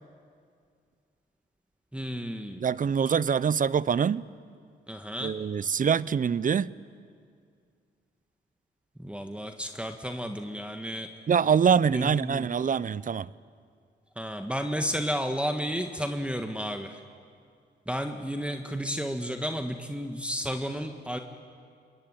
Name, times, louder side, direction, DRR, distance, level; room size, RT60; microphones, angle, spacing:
voice 1, 1.9-2.6 4.9-5.3 9.0-11.1 11.9-12.5 14.2-17.0 17.9-21.2, equal, 5° right, 5 dB, 1.6 m, -32 dB
voice 2, 2.6-4.2 5.2-6.7 11.3-13.3, right 7 dB, 45° right, 20 dB, 0.6 m, -24 dB
26.5 x 21.5 x 9.0 m, 2.2 s
cardioid pair, 60°, 20 cm